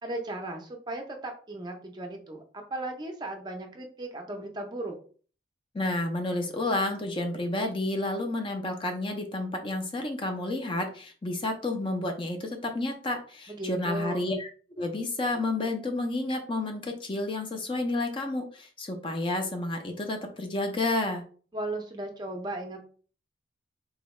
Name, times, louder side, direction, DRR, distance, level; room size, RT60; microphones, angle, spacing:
voice 1, 0.0-5.0 13.5-14.3 21.5-22.8, right 1 dB, 20° right, 3 dB, 0.5 m, -36 dB
voice 2, 5.7-14.5 14.8-21.2, left 2 dB, 25° left, 4 dB, 0.5 m, -30 dB
3.6 x 2.2 x 3.1 m, 0.42 s
head